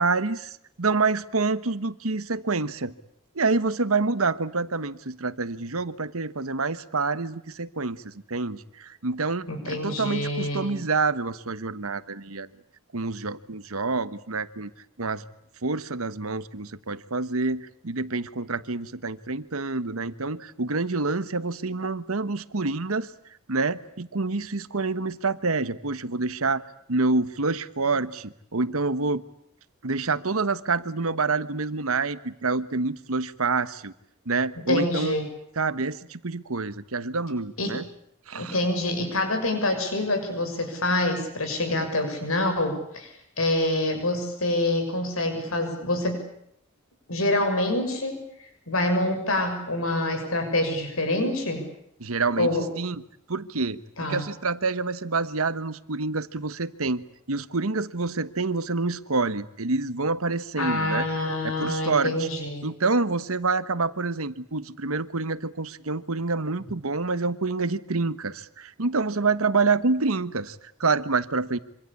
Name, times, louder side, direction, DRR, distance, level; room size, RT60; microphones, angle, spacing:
voice 1, 0.0-2.9 3.3-12.5 12.9-14.7 15.0-15.2 15.6-23.1 23.5-26.6 26.9-29.2 29.8-33.9 34.3-35.2 35.6-37.8 38.3-38.6 52.0-52.5 52.8-53.0 53.3-61.0 61.4-62.3 62.6-71.6, right 3 dB, 80° right, 14 dB, 1.3 m, -27 dB
voice 2, 9.5-10.8 34.7-35.2 37.6-37.8 38.3-46.2 47.1-48.2 48.7-51.6 52.4-52.6 54.0-54.2 60.6-62.7, left 1 dB, 75° left, 7 dB, 6.7 m, -26 dB
26.5 x 25.5 x 8.5 m, 0.73 s
head